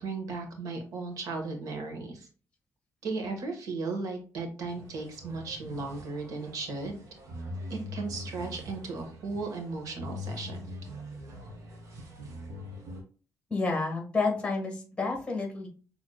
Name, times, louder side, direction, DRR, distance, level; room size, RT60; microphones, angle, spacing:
voice 1, 0.0-2.3 3.0-7.0 7.7-10.7, right 3 dB, 90° right, 4 dB, 1.4 m, -36 dB
Prague venue + live band rehearsing, 4.7-13.0, left 1 dB, 65° right, 1.5 m, -42 dB
voice 2, 13.5-15.7, left 3 dB, 20° left, 2 dB, 1.5 m, -30 dB
6.4 x 3.5 x 2.3 m, 0.38 s
wide cardioid pair, 170°, 6 cm